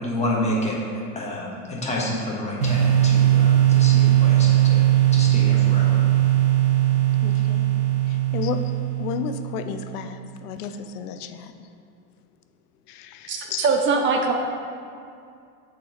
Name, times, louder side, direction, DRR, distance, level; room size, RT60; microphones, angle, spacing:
voice 1, 0.0-6.0, left 1 dB, 15° left, -4 dB, 1.3 m, -29 dB
sound 1, 2.6-9.4, right 13 dB, 75° right, 1.3 m, -19 dB
voice 2, 7.2-7.7 8.1-8.6 9.0-11.5 12.9-13.7, left 8 dB, 90° left, 8 dB, 0.6 m, -32 dB
voice 3, 13.3-14.3, right 4 dB, 30° right, 3 dB, 0.4 m, -22 dB
7.5 x 4.5 x 3.9 m, 2.4 s
supercardioid pair, 120°, 44 cm